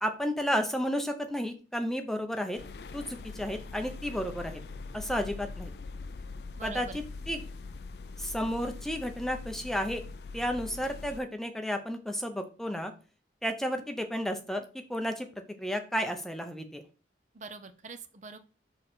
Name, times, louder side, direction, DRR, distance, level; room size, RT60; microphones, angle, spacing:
voice 1, 0.0-2.6 2.9-4.6 4.9-5.7 6.6-7.4 8.2-10.0 10.3-12.9 13.4-14.6 14.9-15.3 15.6-16.8, equal, ahead, 6 dB, 0.6 m, -32 dB
sound 1, 2.6-11.2, left 3 dB, 65° left, 0.5 m, -42 dB
voice 2, 6.6-7.0 17.3-18.4, right 4 dB, 45° right, 9 dB, 0.6 m, -43 dB
6.3 x 3.8 x 4.3 m, 0.35 s
head